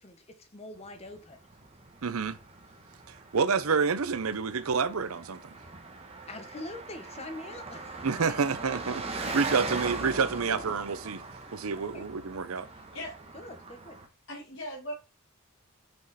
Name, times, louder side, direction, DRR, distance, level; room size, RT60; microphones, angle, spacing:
voice 1, 0.0-1.4 6.3-8.4 9.2-10.8 11.8-12.0 13.3-14.0, left 2 dB, 30° left, 1.1 m, -44 dB
Car passing by, 0.9-14.1, right 3 dB, 25° right, 1.1 m, -40 dB
voice 2, 2.0-2.4 3.1-5.4 8.0-11.2 11.5-12.7, right 5 dB, 75° right, 0.6 m, -29 dB
voice 3, 12.6-13.1 14.3-14.9, left 1 dB, 55° left, 1.8 m, -39 dB
6.2 x 4.9 x 4.1 m
head